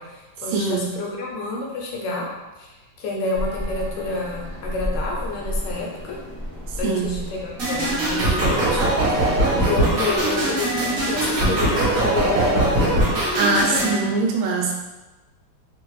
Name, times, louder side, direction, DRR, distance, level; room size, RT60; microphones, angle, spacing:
voice 1, 0.0-2.3 2.6-6.2 6.8-13.1 13.7-14.0, left 3 dB, 75° left, -2 dB, 1.2 m, -29 dB
voice 2, 0.5-0.9 6.8-7.1 13.4-14.7, right 3 dB, 85° right, 1 dB, 1.3 m, -22 dB
sound 1, 3.3-13.6, equal, 25° right, 0.4 m, -34 dB
sound 2, 7.6-14.0, right 1 dB, 50° right, 1.2 m, -21 dB
3.1 x 2.5 x 3.0 m, 1.1 s
omnidirectional pair, 2.1 m